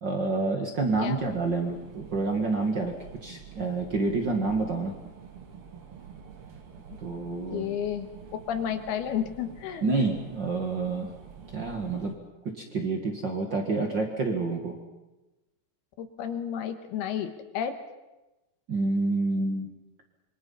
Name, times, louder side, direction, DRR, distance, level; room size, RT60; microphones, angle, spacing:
voice 1, 0.0-2.9 3.2-4.9 7.0-7.7 9.8-11.1 11.5-12.1 12.6-14.7 18.7-19.7, right 3 dB, 75° right, 3 dB, 1.0 m, -28 dB
sound 1, 0.9-12.1, right 7 dB, 50° right, 1.7 m, -47 dB
voice 2, 7.5-8.1 8.5-9.8 16.0-17.8, left 9 dB, 70° left, 8 dB, 2.9 m, -31 dB
26.5 x 24.0 x 5.6 m, 1.0 s
omnidirectional pair, 5.2 m